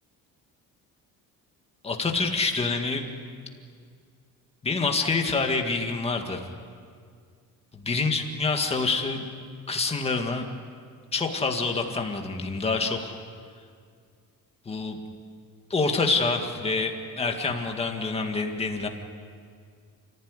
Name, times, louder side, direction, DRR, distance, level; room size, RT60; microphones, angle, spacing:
voice 1, 1.8-3.1 4.6-6.4 7.7-9.2 9.7-10.5 11.1-13.1 14.7-15.0 15.7-18.9, left 4 dB, 15° left, 3 dB, 2.0 m, -26 dB
29.5 x 15.0 x 9.8 m, 2.1 s
cardioid pair, 180°, 34 cm